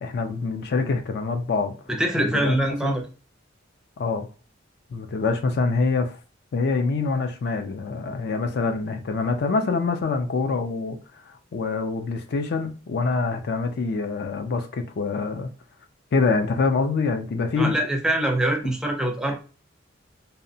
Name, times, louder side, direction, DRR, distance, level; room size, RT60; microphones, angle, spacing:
voice 1, 0.0-1.7 2.1-3.0 4.0-4.3 4.9-6.2 6.5-11.0 11.3-15.5 16.1-17.8, left 4 dB, 55° left, 0.4 m, -25 dB
voice 2, 1.9-3.0 17.6-19.3, right 1 dB, 5° right, 0.4 m, -24 dB
2.7 x 2.0 x 2.6 m
head